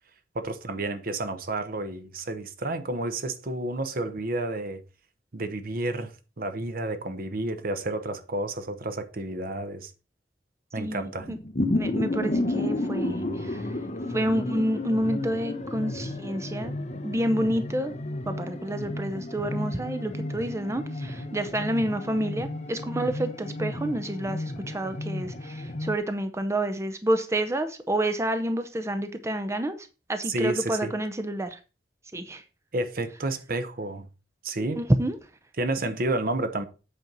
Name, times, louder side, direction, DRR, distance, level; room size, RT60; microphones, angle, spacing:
voice 1, 0.3-4.8 5.3-9.9 10.7-11.3 30.3-30.9 32.7-34.1 34.4-34.8 35.6-36.6, right 2 dB, 55° right, 1.0 m, -30 dB
voice 2, 10.8-11.4 11.7-13.7 14.1-16.7 17.0-18.0 18.3-31.6 32.1-32.4 34.8-35.2, right 1 dB, 15° right, 0.7 m, -29 dB
sound 1, 11.2-26.0, left 1 dB, 40° left, 0.9 m, -32 dB
8.3 x 4.5 x 5.3 m
head